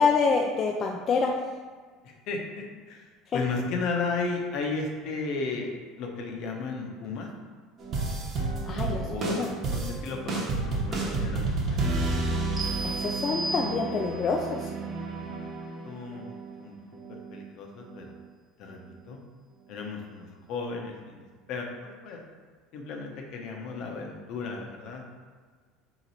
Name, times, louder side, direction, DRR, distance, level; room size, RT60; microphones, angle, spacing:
voice 1, 0.0-1.3 3.3-3.4 8.6-9.5 12.8-14.7, left 5 dB, 40° left, 1 dB, 0.4 m, -26 dB
voice 2, 2.0-5.7 6.0-7.3 9.0-11.9 15.8-16.3 16.6-16.8 17.3-18.1 18.6-18.8 19.1-19.2 19.7-22.2 22.7-25.0, left 4 dB, 60° left, 1 dB, 0.8 m, -34 dB
sound 1, 7.8-16.6 16.9-17.4 17.8-18.3 18.6-18.7, right 3 dB, 40° right, 1.0 m, -31 dB
sound 2, 12.6-14.3, right 1 dB, 10° right, 1.1 m, -34 dB
3.9 x 3.0 x 4.0 m, 1.6 s
supercardioid pair, 115°, 0 cm